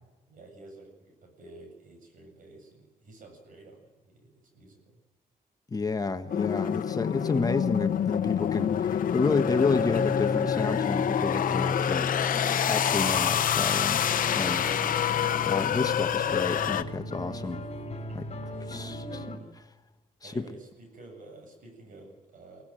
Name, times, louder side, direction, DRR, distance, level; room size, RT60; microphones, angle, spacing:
voice 1, 0.3-5.0 14.8-15.4 17.4-19.5 20.2-22.6, right 2 dB, 65° right, 4 dB, 7.7 m, -51 dB
voice 2, 5.7-12.1 12.7-14.0 14.3-15.0 15.4-17.6 18.1-18.3 18.7-19.4 20.2-20.5, left 3 dB, 25° left, 7 dB, 1.5 m, -30 dB
sound 1, 6.3-16.8, left 9 dB, 65° left, 1.0 m, -27 dB
sound 2, 9.6-19.4, left 3 dB, 45° left, 4.8 m, -35 dB
23.5 x 17.5 x 9.1 m, 1.2 s
cardioid pair, 115°, 15 cm